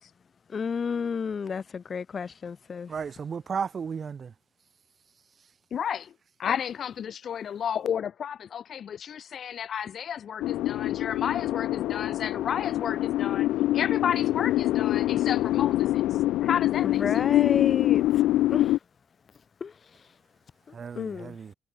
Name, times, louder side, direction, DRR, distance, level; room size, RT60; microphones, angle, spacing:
voice 1, 0.5-2.9 16.8-18.0 18.5-18.8 19.6-19.7 20.9-21.4, left 6 dB, 45° left, 5.2 m, -31 dB
voice 2, 2.9-4.3 20.7-21.5, right 6 dB, 45° right, 5.6 m, -34 dB
voice 3, 5.7-6.1 6.4-16.1 16.4-17.1, left 8 dB, 60° left, 2.4 m, -32 dB
sound 1, 10.4-18.8, left 15 dB, 90° left, 1.3 m, -25 dB
cardioid pair, 90°, 0 cm